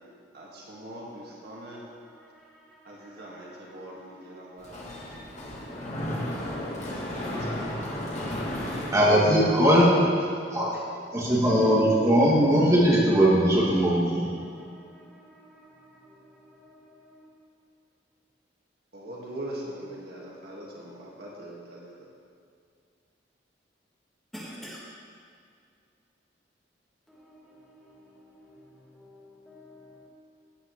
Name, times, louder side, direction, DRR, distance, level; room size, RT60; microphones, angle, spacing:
voice 1, 0.3-1.9 2.9-4.8 6.8-7.9 8.2-9.5 10.5-10.6 18.9-21.9, right 1 dB, 60° right, -5 dB, 2.0 m, -42 dB
Mechanisms, 4.6-9.8, left 1 dB, 40° left, 1.7 m, -34 dB
voice 2, 8.9-9.9 10.5-10.7 11.1-14.3, equal, 20° right, -8 dB, 2.8 m, -20 dB
voice 3, 10.9-11.8 12.2-12.7 14.4-14.6 15.0-15.7 16.0-16.2 16.5-17.2 24.3-24.8 27.1-28.6 28.9-30.1, left 1 dB, ahead, -8 dB, 1.7 m, -49 dB
15.5 x 8.9 x 3.2 m, 2.3 s
head